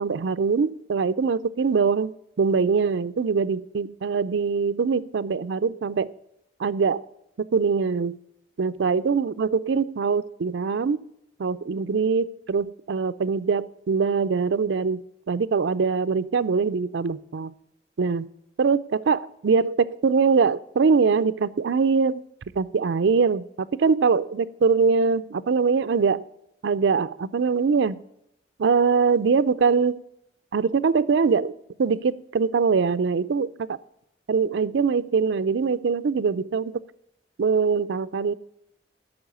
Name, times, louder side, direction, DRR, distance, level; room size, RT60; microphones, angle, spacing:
voice 1, 0.0-6.1 6.6-7.0 7.4-8.2 8.6-11.0 11.4-15.0 15.3-17.5 18.0-18.3 18.6-22.2 22.6-26.2 26.6-28.0 28.6-30.0 30.5-31.5 31.8-33.5 34.3-36.8 37.4-38.3, right 5 dB, 75° right, 15 dB, 0.4 m, -23 dB
8.7 x 5.6 x 7.9 m, 0.80 s
head